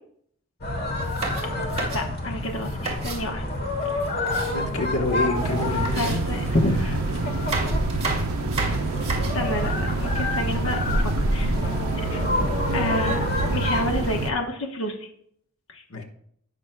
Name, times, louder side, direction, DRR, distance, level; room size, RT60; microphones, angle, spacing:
sound 1, 0.6-14.3, left 1 dB, 45° left, 1.5 m, -28 dB
sound 2, 0.9-3.2 3.8-5.1 5.4-5.5 5.9-6.8 7.3-9.5, right 3 dB, 30° right, 2.2 m, -33 dB
voice 1, 1.9-3.4 5.9-7.0 9.3-11.5 12.7-15.0 15.7-16.0, left 1 dB, 65° left, 2 dB, 1.0 m, -28 dB
voice 2, 4.5-6.2 12.0-12.2 15.9-16.0, left 2 dB, 85° left, 3 dB, 1.2 m, -28 dB
sound 3, 5.3-14.3, right 3 dB, 85° right, 0.6 m, -28 dB
16.5 x 6.2 x 2.2 m, 0.67 s
head